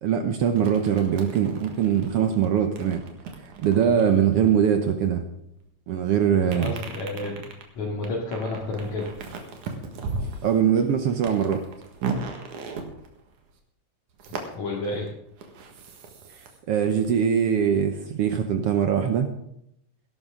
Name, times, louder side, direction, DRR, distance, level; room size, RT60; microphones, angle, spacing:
voice 1, 0.0-3.0 3.4-5.2 5.9-6.7 10.4-11.6 16.7-19.3, right 8 dB, 65° right, 6 dB, 1.5 m, -22 dB
sound 1, 0.5-5.4 6.5-13.5 14.2-16.6 16.8-18.1, right 4 dB, 80° right, 3.1 m, -37 dB
voice 2, 6.4-7.4 7.7-9.1 14.5-15.1, left 2 dB, 70° left, -4 dB, 3.4 m, -30 dB
19.0 x 11.5 x 3.7 m, 0.76 s
omnidirectional pair, 3.4 m